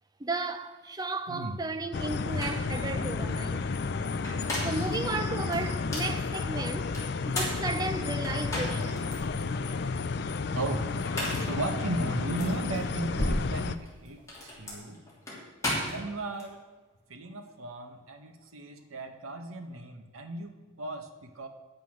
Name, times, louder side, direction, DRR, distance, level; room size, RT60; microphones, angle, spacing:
voice 1, 0.2-3.7 4.6-7.0 7.3-9.2, right 3 dB, 20° right, 0.5 m, -34 dB
voice 2, 1.3-1.6 4.7-4.9 10.5-11.0 11.4-15.0 15.8-16.6 17.1-21.5, right 2 dB, 85° right, 1.1 m, -36 dB
sound 1, 1.9-13.8, left 4 dB, 50° left, 0.4 m, -32 dB
sound 2, 2.0-2.1 2.4-2.7 4.1-4.9 5.5-6.2 6.9-9.0 9.5-9.6 10.9-11.6 12.4-12.5 13.7-16.5, left 1 dB, 15° left, 2.9 m, -35 dB
sound 3, 4.3-14.8, equal, 45° right, 2.9 m, -41 dB
9.3 x 7.8 x 6.2 m
head